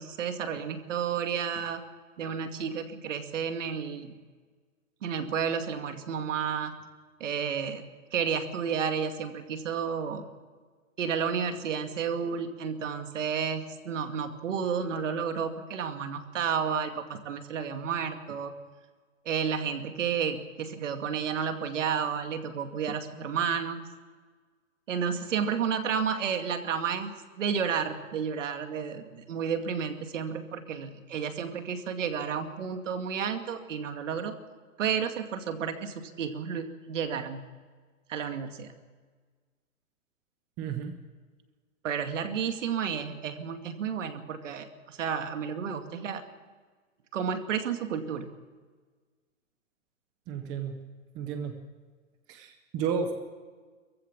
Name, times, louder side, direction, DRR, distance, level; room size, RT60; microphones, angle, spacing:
voice 1, 0.0-1.8 2.2-4.1 5.0-6.7 7.2-7.8 8.1-10.2 11.0-18.5 19.3-23.8 24.9-34.3 34.8-37.5 38.1-38.7 41.8-46.2 47.1-48.3, right 7 dB, 65° right, 7 dB, 2.4 m, -31 dB
voice 2, 40.6-41.0 50.3-50.8 51.1-51.6 52.3-53.1, right 6 dB, 10° right, 6 dB, 0.5 m, -32 dB
23.5 x 15.5 x 7.3 m, 1.5 s
hypercardioid pair, 160°, 41 cm